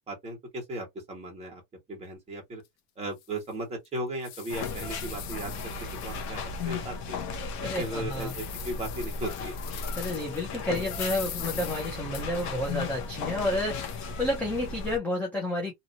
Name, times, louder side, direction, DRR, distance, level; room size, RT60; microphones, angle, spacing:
voice 1, 0.1-1.6 1.9-2.6 3.0-5.5 6.0-7.2 7.6-9.6, right 1 dB, 15° right, 1.4 m, -36 dB
sound 1, 2.6-2.7 3.2-3.3 3.8-6.7 7.1-7.2 7.7-10.4 10.7-12.7, left 11 dB, 65° left, 0.9 m, -42 dB
sound 2, 4.5-15.0, left 4 dB, 40° left, 0.8 m, -36 dB
voice 2, 7.6-8.3 10.0-15.7, left 1 dB, 5° left, 0.3 m, -30 dB
2.9 x 2.6 x 2.6 m
cardioid pair, 170°, 43 cm